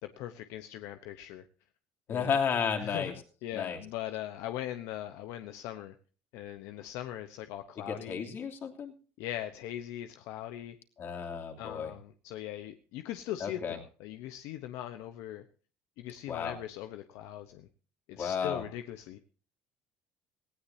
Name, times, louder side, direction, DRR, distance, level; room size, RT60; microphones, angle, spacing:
voice 1, 0.0-1.4 2.1-2.4 2.8-6.0 6.3-8.3 9.2-10.8 11.6-15.4 16.0-17.7 18.1-19.2, left 12 dB, 80° left, 9 dB, 1.0 m, -40 dB
voice 2, 2.1-3.1 3.5-3.8 7.8-8.9 11.0-11.9 13.4-13.8 16.3-16.6 18.2-18.6, left 6 dB, 45° left, 3 dB, 3.1 m, -33 dB
18.5 x 16.5 x 2.8 m, 0.38 s
cardioid pair, 115°, 5 cm